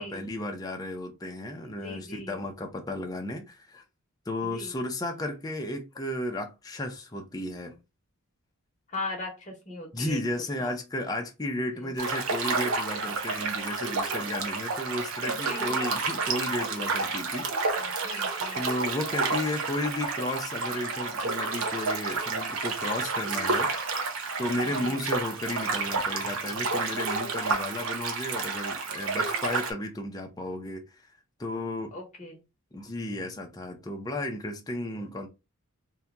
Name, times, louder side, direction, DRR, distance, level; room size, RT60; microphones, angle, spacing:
voice 1, 0.0-3.8 4.3-7.8 9.9-17.6 18.5-23.7 24.4-31.0 31.4-32.0 32.7-35.3, left 1 dB, 15° left, 0.5 m, -33 dB
voice 2, 1.8-2.4 4.4-4.7 8.9-10.2 10.6-10.7 11.8-11.9 15.2-15.7 17.8-18.7 24.8-25.0 31.9-32.4, left 2 dB, 35° left, 0.9 m, -39 dB
sound 1, 12.0-29.7, right 4 dB, 70° right, 0.6 m, -30 dB
2.7 x 2.2 x 3.6 m
head